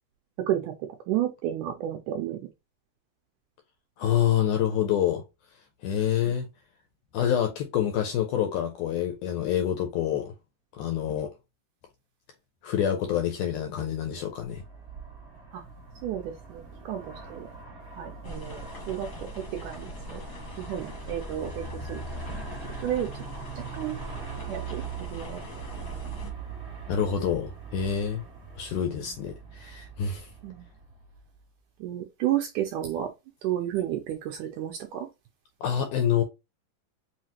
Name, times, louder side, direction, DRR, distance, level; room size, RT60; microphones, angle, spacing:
voice 1, 0.4-2.5 6.2-6.3 15.5-15.6 16.0-17.5 17.9-18.6 18.9-20.2 20.6-22.0 22.3-22.4 22.8-23.1 23.6-24.0 24.5-25.4 25.8-26.3 29.0-29.2 30.4-30.7 31.8-33.1 33.4-35.1, right 11 dB, 80° right, 1.9 m, -32 dB
voice 2, 4.0-5.2 5.8-6.5 7.1-10.3 10.7-11.3 12.6-14.6 26.9-28.2 28.6-30.3 35.6-36.2, left 9 dB, 80° left, 1.9 m, -27 dB
Aircraft, 14.2-31.4, right 4 dB, 35° right, 1.0 m, -42 dB
sound 1, 18.2-26.3, equal, 55° left, 1.3 m, -42 dB
5.7 x 2.8 x 2.9 m
omnidirectional pair, 4.2 m